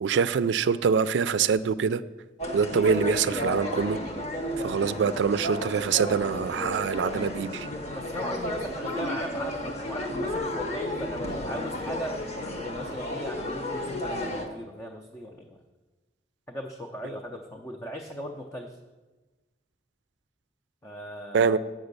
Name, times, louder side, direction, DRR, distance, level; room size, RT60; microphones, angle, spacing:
voice 1, 0.0-2.0 2.5-4.0 4.6-7.7 21.3-21.6, right 6 dB, 85° right, 15 dB, 0.3 m, -24 dB
sound 1, 2.4-14.4, left 1 dB, 40° left, 1.0 m, -33 dB
voice 2, 7.9-15.6 16.5-18.8 20.8-21.6, equal, 15° left, 2 dB, 0.5 m, -38 dB
8.0 x 6.0 x 6.6 m, 1.2 s
head